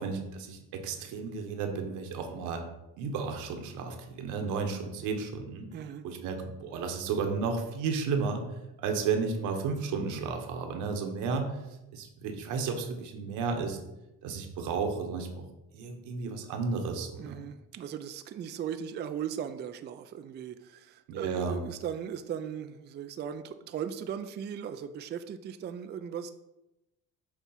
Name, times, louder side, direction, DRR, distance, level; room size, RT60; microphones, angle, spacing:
voice 1, 0.0-2.6 3.0-5.7 6.0-8.4 8.8-11.5 11.9-13.8 14.2-15.3 15.7-17.4 21.1-21.6, right 5 dB, 85° right, 4 dB, 1.1 m, -33 dB
voice 2, 5.7-6.0 17.2-26.3, right 8 dB, 35° right, 9 dB, 0.4 m, -38 dB
7.0 x 2.4 x 5.6 m, 0.95 s
cardioid pair, 90°, 30 cm